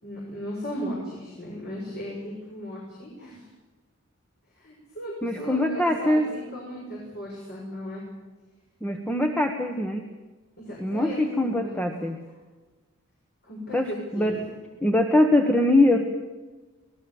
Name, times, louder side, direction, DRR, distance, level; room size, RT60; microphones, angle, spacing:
voice 1, 0.0-3.4 4.5-8.0 10.6-11.7 13.4-14.5, equal, 50° left, -4 dB, 6.5 m, -36 dB
voice 2, 5.2-6.3 8.8-10.1 10.8-12.2 13.7-14.4 14.8-16.0, left 1 dB, 5° left, 4 dB, 1.3 m, -22 dB
24.0 x 20.0 x 7.3 m, 1.3 s
head